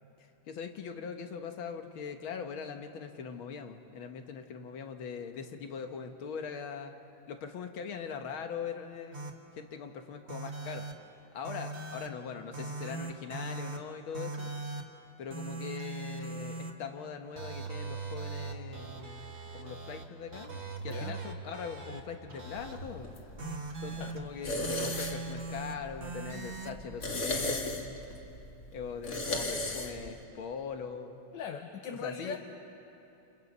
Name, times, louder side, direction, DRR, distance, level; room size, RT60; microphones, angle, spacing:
voice 1, 0.2-6.9 7.3-9.2 9.6-10.9 11.3-14.5 15.2-19.3 19.5-23.1 23.8-28.0 28.7-31.2 31.9-32.4, left 6 dB, 85° left, 6 dB, 2.1 m, -41 dB
sound 1, 9.1-9.3 10.3-10.9 11.4-12.1 12.5-13.8 14.1-14.8 15.3-16.7 17.4-20.0 20.3-22.0 22.3-22.8 23.4-24.2 24.6-25.7 26.0-26.8, right 3 dB, 35° right, 1.8 m, -40 dB
sound 2, 22.6-30.2, left 2 dB, 35° left, 2.1 m, -37 dB
voice 2, 31.3-32.4, left 6 dB, 65° left, 4 dB, 1.6 m, -39 dB
30.0 x 28.5 x 5.5 m, 2.9 s
omnidirectional pair, 2.2 m